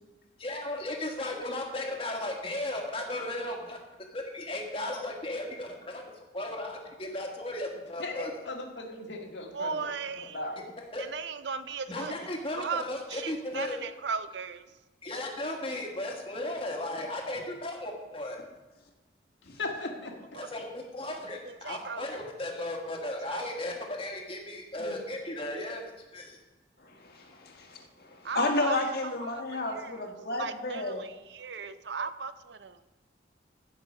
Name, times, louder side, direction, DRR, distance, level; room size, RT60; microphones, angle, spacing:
voice 1, 0.4-3.8 4.1-6.0 6.3-8.3 10.9-11.1 11.9-13.8 15.0-18.4 20.3-26.4, left 1 dB, 30° left, 1 dB, 1.7 m, -35 dB
voice 2, 8.0-9.9 10.3-10.6 19.6-20.2, left 2 dB, 75° left, 2 dB, 1.8 m, -37 dB
voice 3, 9.5-10.4 11.0-12.3 12.6-12.8 13.1-14.6 20.4-20.5 21.4-22.2 23.3-23.5 28.2-28.8 29.2-30.1 30.4-32.8, right 5 dB, 65° right, 12 dB, 0.6 m, -37 dB
voice 4, 26.8-31.0, left 2 dB, 55° left, 2 dB, 1.7 m, -32 dB
15.5 x 6.0 x 5.3 m, 1.1 s
head